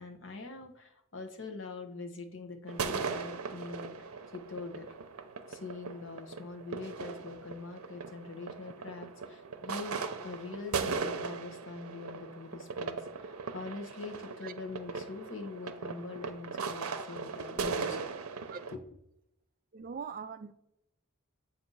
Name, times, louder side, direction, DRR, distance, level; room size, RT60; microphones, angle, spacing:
voice 1, 0.0-4.9 5.5-18.1 18.7-18.8, left 3 dB, 55° left, 0.9 m, -43 dB
sound 1, 2.7-18.8, right 5 dB, 80° right, 0.6 m, -38 dB
voice 2, 19.7-20.5, right 6 dB, 40° right, 0.3 m, -41 dB
7.5 x 2.6 x 5.4 m
head